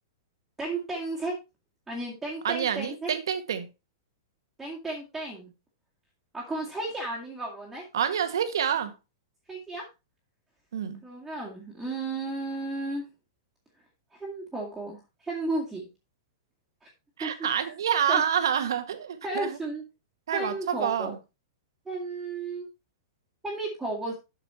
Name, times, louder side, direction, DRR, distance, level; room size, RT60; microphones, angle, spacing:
voice 1, 0.6-1.4 1.9-3.1 4.6-5.5 6.3-7.9 9.5-9.9 11.0-13.1 14.1-15.9 16.8-16.9 17.2-17.7 18.1-18.2 19.2-19.8 20.3-21.1 21.9-22.7 23.4-24.1, right 2 dB, 5° right, 2.1 m, -34 dB
voice 2, 2.4-3.7 7.9-8.9 10.7-11.0 17.2-19.6 20.3-21.2, right 8 dB, 85° right, 1.7 m, -27 dB
8.5 x 6.7 x 4.3 m
hypercardioid pair, 155°, 2 cm